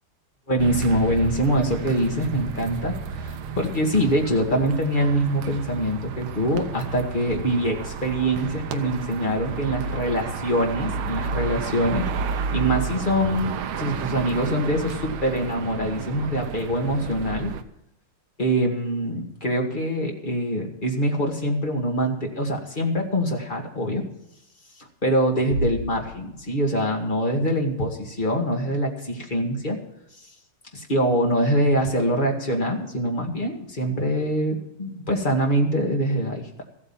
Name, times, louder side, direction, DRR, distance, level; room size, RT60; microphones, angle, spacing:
voice 1, 0.5-12.1 12.5-17.5 18.4-24.1 24.8-29.8 30.7-36.6, equal, 25° left, 1 dB, 2.1 m, -24 dB
sound 1, 0.6-17.6, right 5 dB, 75° right, 1.7 m, -31 dB
sound 2, 25.5-26.9, left 1 dB, 65° left, 1.7 m, -31 dB
14.5 x 8.8 x 7.3 m, 0.81 s
omnidirectional pair, 2.3 m